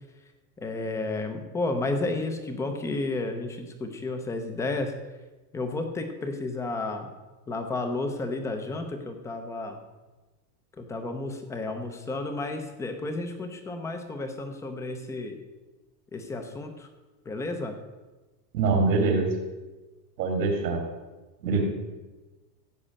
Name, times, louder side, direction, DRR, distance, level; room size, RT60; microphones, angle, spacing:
voice 1, 0.6-4.9 5.5-7.1 7.5-9.8 10.8-15.4 16.1-16.9 17.3-17.7, left 2 dB, 5° left, 6 dB, 0.5 m, -32 dB
voice 2, 18.5-19.3 20.2-20.8 21.4-21.6, right 4 dB, 90° right, 0 dB, 3.2 m, -24 dB
15.0 x 5.4 x 8.7 m, 1.2 s
supercardioid pair, 165°, 49 cm